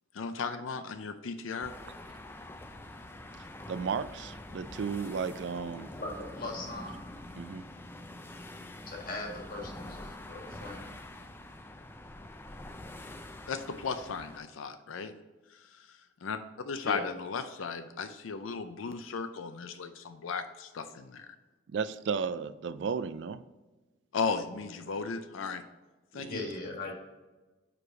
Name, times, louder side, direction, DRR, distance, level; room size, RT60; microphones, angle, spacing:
voice 1, 0.1-1.7 13.5-15.1 15.5-16.4 16.7-21.3 24.1-25.6 26.1-26.4, left 5 dB, 85° left, 9 dB, 0.5 m, -36 dB
sound 1, 1.6-14.4, left 1 dB, 10° left, 0.4 m, -46 dB
voice 2, 3.7-5.9 7.3-7.6 21.7-23.4 26.1-26.5, right 6 dB, 60° right, 13 dB, 0.3 m, -34 dB
voice 3, 6.0-7.0 8.9-10.9 16.8-17.0 26.3-26.9, left 2 dB, 45° left, -1 dB, 1.6 m, -39 dB
5.0 x 4.8 x 4.8 m, 1.2 s
head